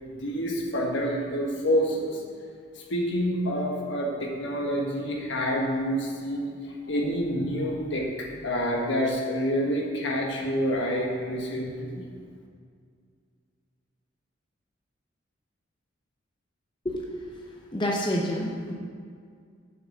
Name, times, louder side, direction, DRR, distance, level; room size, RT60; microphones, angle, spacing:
voice 1, 0.0-2.2 2.9-12.0, equal, 65° left, 0 dB, 1.4 m, -28 dB
voice 2, 17.7-18.7, equal, 25° left, -1 dB, 0.7 m, -28 dB
7.5 x 5.7 x 6.5 m, 2.1 s
head